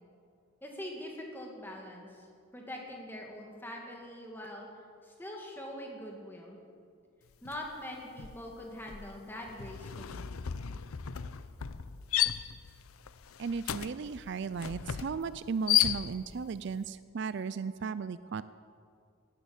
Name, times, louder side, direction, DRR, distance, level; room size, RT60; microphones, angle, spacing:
voice 1, 0.6-2.3 2.5-4.7 5.0-6.6 7.4-10.3, left 1 dB, 10° left, -1 dB, 2.3 m, -43 dB
sound 1, 7.5-7.7 8.0-16.5, left 11 dB, 90° left, 0.6 m, -34 dB
voice 2, 13.4-18.4, right 5 dB, 55° right, 15 dB, 0.4 m, -36 dB
17.5 x 10.5 x 7.2 m, 2.3 s
head